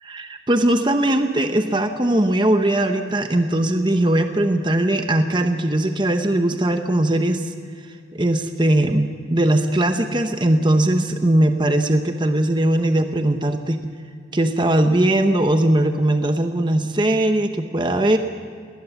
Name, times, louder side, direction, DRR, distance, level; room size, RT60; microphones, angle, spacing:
voice 1, 0.1-7.5 8.1-13.9 14.3-18.2, right 1 dB, 25° right, 6 dB, 0.9 m, -19 dB
20.0 x 19.0 x 7.1 m, 2.1 s
head